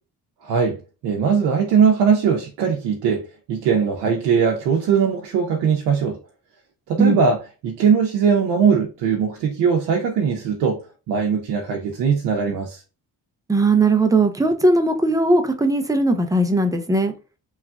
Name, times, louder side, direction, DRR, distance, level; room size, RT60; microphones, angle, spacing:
voice 1, 0.4-0.8 1.0-6.2 6.9-10.8 11.1-12.8, right 6 dB, 85° right, 0.6 m, -20 dB
voice 2, 13.5-17.1, right 2 dB, 10° right, 0.5 m, -18 dB
3.0 x 2.4 x 2.3 m
supercardioid pair, 65°, 39 cm